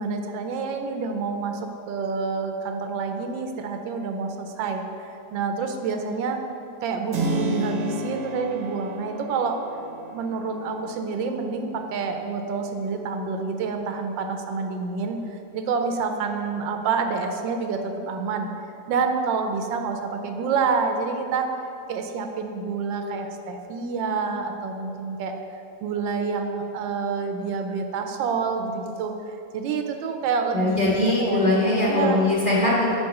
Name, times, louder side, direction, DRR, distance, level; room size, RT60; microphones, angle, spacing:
voice 1, 0.0-6.4 6.8-9.6 10.1-18.5 18.9-21.5 21.9-25.3 25.8-29.1 29.5-31.4 31.9-32.2, right 5 dB, 85° right, 5 dB, 1.3 m, -28 dB
Keyboard (musical), 7.1-15.7, right 1 dB, 60° right, 1.0 m, -35 dB
voice 2, 30.5-33.0, left 2 dB, 25° left, -8 dB, 1.8 m, -21 dB
6.7 x 4.7 x 5.3 m, 2.7 s
omnidirectional pair, 2.0 m